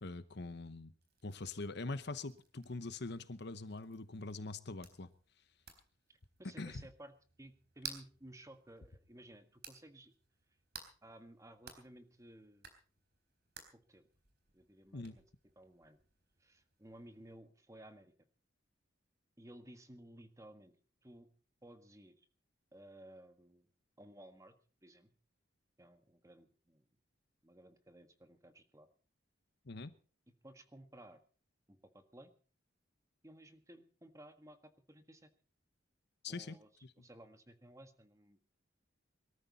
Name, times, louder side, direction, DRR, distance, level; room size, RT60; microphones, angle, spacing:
voice 1, 0.0-0.9 1.2-5.1 6.6-6.8 14.9-15.2 29.6-29.9 36.2-36.6, left 3 dB, 60° left, 13 dB, 1.0 m, -43 dB
sound 1, 1.0-17.4, right 6 dB, 55° right, 3.9 m, -57 dB
voice 2, 6.4-10.1 11.0-12.7 13.7-14.0 14.5-15.2 15.5-16.0 16.4-18.1 19.4-20.7 21.0-21.3 21.6-22.3 22.7-23.7 24.0-24.6 24.8-25.1 25.8-26.9 27.4-28.9 30.3-31.2 31.7-32.3 33.2-35.3 36.3-36.7 37.0-38.5, right 1 dB, 15° right, 7 dB, 1.6 m, -57 dB
23.0 x 13.5 x 4.1 m, 0.40 s
head